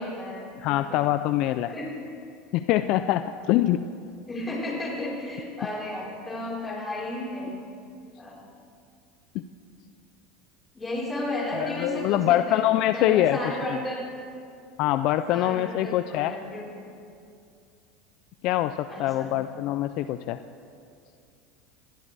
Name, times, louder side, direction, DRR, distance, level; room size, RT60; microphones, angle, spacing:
voice 1, 0.0-1.1 1.7-1.9 4.3-7.6 8.2-8.4 10.7-12.6 12.9-14.0 15.3-16.7 18.9-19.4, left 1 dB, 20° left, -3 dB, 4.4 m, -33 dB
voice 2, 0.6-1.7 2.5-3.8 9.3-9.4 11.6-13.4 14.8-16.3 18.4-20.4, left 14 dB, 60° left, 11 dB, 0.4 m, -24 dB
22.0 x 15.5 x 3.4 m, 2.5 s
supercardioid pair, 110°, 0 cm